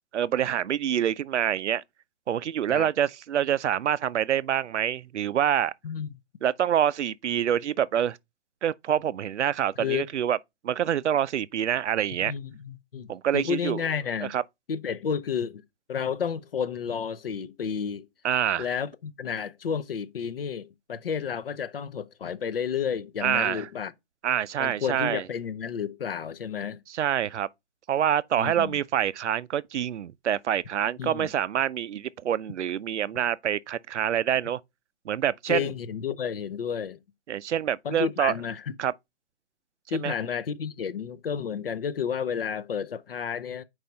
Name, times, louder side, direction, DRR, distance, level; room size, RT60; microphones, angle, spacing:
voice 1, 0.1-1.8 2.3-5.7 6.4-8.2 8.6-10.4 10.6-12.3 13.1-13.8 14.2-14.4 18.2-18.7 23.2-23.7 24.2-25.2 26.9-27.5 27.9-34.6 35.1-35.7 37.3-38.3 38.8-38.9 39.9-40.1, right 10 dB, 75° right, 0.5 m, -26 dB
voice 2, 5.8-6.2 9.8-10.1 12.2-14.3 14.7-15.6 15.9-18.1 18.6-23.9 24.6-26.8 28.4-28.8 31.0-31.3 35.5-37.0 37.8-38.6 39.9-43.6, left 7 dB, 55° left, 0.7 m, -31 dB
4.7 x 4.3 x 5.2 m
hypercardioid pair, 160°, 35 cm